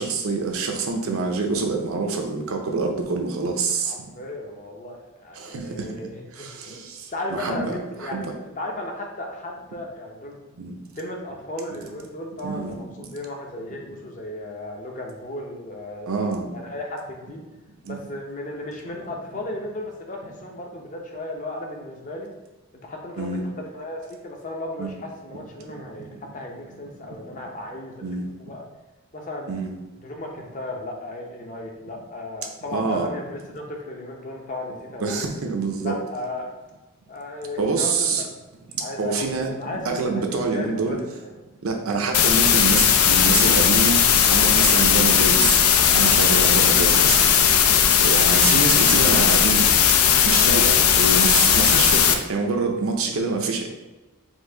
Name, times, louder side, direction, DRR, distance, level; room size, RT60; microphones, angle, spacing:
voice 1, 0.0-3.9 5.4-6.0 6.3-8.3 10.6-10.8 12.4-13.1 16.1-16.5 17.8-18.0 23.2-23.4 24.8-24.9 26.0-26.1 28.0-28.3 29.5-29.7 32.7-33.1 35.0-35.9 37.6-38.2 38.7-39.5 39.8-41.0 41.6-44.0 44.3-45.6 45.9-47.2 48.0-49.7 50.2-53.7, right 4 dB, 70° right, 2 dB, 0.7 m, -26 dB
voice 2, 3.8-10.4 10.9-16.1 16.5-17.4 17.8-22.3 22.8-23.3 23.6-28.7 29.1-29.5 30.0-35.3 35.8-36.5 37.1-38.3 38.8-41.4 48.8-49.0, left 1 dB, 35° left, 1 dB, 0.7 m, -35 dB
sound 1, 42.1-52.1, left 8 dB, 80° left, 0.4 m, -17 dB
4.4 x 2.7 x 3.8 m, 1.2 s
head